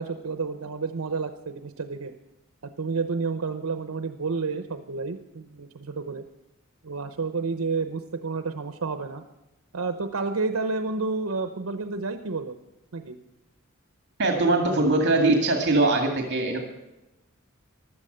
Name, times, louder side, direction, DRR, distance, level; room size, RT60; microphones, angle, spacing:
voice 1, 0.0-2.1 2.8-6.2 6.8-9.2 9.7-12.6 12.9-13.2, right 4 dB, 90° right, 8 dB, 0.8 m, -30 dB
voice 2, 14.2-16.6, right 2 dB, 55° right, 3 dB, 2.1 m, -21 dB
16.0 x 12.0 x 6.7 m, 1.0 s
head